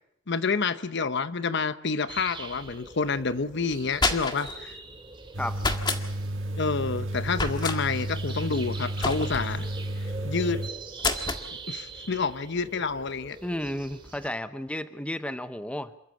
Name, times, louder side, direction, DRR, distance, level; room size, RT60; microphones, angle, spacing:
voice 1, 0.3-4.8 6.6-9.7 10.2-10.6 11.7-13.4, left 4 dB, 60° left, 13 dB, 0.9 m, -28 dB
sound 1, 2.1-14.3, right 4 dB, 25° right, 2.7 m, -43 dB
sound 2, 3.7-4.6 5.6-6.0 7.3-7.8 9.0-9.5 11.0-11.5, left 3 dB, 25° left, 1.7 m, -28 dB
sound 3, 5.3-10.7, right 1 dB, 70° right, 1.7 m, -32 dB
voice 2, 13.4-16.0, left 1 dB, 5° left, 11 dB, 0.9 m, -33 dB
27.5 x 14.0 x 8.5 m, 0.74 s
head